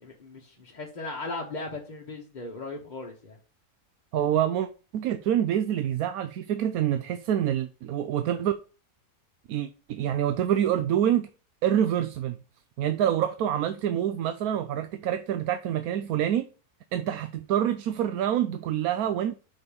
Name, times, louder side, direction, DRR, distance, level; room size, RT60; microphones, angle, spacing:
voice 1, 0.0-3.4, left 2 dB, 30° left, 1.1 m, -37 dB
voice 2, 4.1-4.7 4.9-8.5 9.5-11.3 11.6-12.4 12.8-16.5 16.9-19.3, right 10 dB, 70° right, 1.0 m, -26 dB
6.0 x 5.1 x 5.1 m
omnidirectional pair, 1.7 m